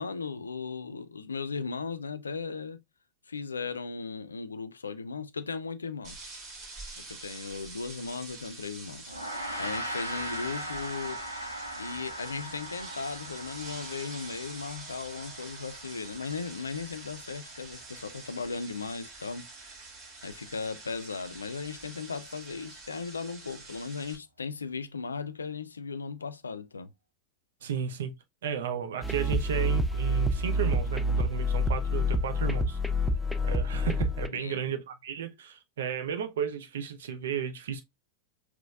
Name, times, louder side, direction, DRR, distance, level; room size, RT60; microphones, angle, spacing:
voice 1, 0.0-2.8 3.3-6.2 7.0-9.1 9.6-11.2 11.8-19.5 20.2-26.9 34.3-34.6, left 4 dB, 75° left, 0.4 m, -37 dB
sound 1, 6.0-24.2, right 3 dB, 30° right, 2.5 m, -46 dB
Gong, 9.1-18.6, right 1 dB, 90° right, 1.0 m, -40 dB
voice 2, 27.6-28.1 28.4-32.8 33.4-37.8, right 7 dB, 60° right, 0.6 m, -33 dB
sound 2, 29.0-34.3, left 1 dB, ahead, 0.5 m, -27 dB
5.0 x 3.2 x 2.4 m
figure-of-eight pair, 90°, 0 cm